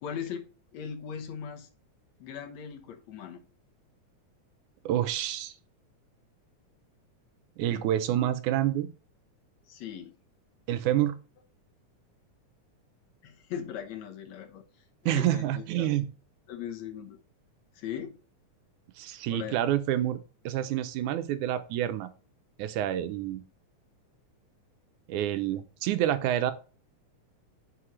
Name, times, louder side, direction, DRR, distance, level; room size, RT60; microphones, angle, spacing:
voice 1, 0.0-0.5 0.7-1.7 2.2-3.4 9.7-10.1 13.2-14.6 15.0-15.9 16.5-17.2 17.8-18.1 19.3-19.6, left 8 dB, 70° left, 5 dB, 2.3 m, -39 dB
voice 2, 4.9-5.5 7.6-8.9 10.7-11.2 15.1-16.1 19.0-20.2 20.5-22.1 22.6-23.4 25.1-26.5, right 12 dB, 90° right, 11 dB, 2.2 m, -28 dB
9.8 x 5.8 x 3.2 m, 0.36 s
omnidirectional pair, 3.5 m